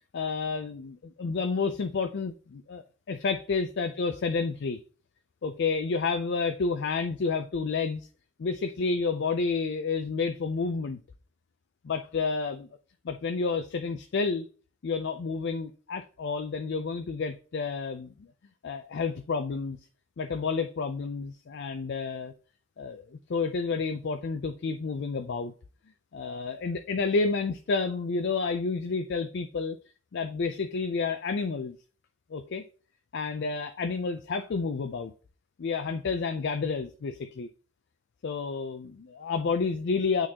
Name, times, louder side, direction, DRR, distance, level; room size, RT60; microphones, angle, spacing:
voice 1, 0.1-4.8 5.4-8.1 8.4-11.0 11.8-12.7 13.0-14.5 14.8-18.1 18.6-19.8 20.2-22.3 22.8-23.0 23.3-25.5 26.1-29.8 30.1-31.8 32.3-32.6 33.1-35.1 35.6-37.5 38.2-40.3, left 4 dB, 55° left, 0.4 m, -30 dB
8.6 x 3.8 x 2.8 m
head